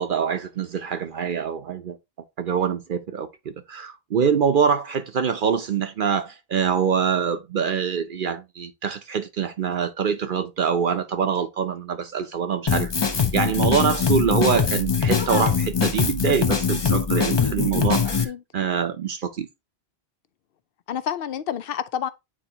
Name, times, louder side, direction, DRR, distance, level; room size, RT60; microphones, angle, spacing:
voice 1, 0.0-2.0 2.4-19.5, right 7 dB, 60° right, 0.8 m, -25 dB
Drum kit, 12.7-18.2, left 6 dB, 30° left, 0.6 m, -22 dB
voice 2, 18.0-18.4 20.9-22.1, left 9 dB, 65° left, 0.8 m, -29 dB
8.8 x 4.1 x 2.8 m
omnidirectional pair, 1.0 m